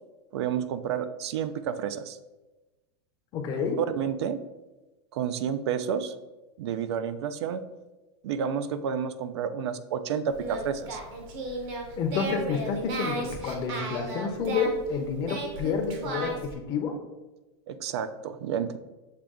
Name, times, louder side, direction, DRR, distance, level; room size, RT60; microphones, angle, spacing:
voice 1, 0.3-2.2 3.8-4.4 5.1-6.1 6.6-7.6 8.2-11.0 17.7-18.8, right 8 dB, 85° right, 12 dB, 0.4 m, -30 dB
voice 2, 3.3-3.8 12.0-17.0, left 5 dB, 30° left, 3 dB, 0.5 m, -29 dB
Singing, 10.3-16.5, right 2 dB, 50° right, 0.9 m, -35 dB
6.4 x 2.3 x 3.6 m, 1.1 s
supercardioid pair, 160°, 14 cm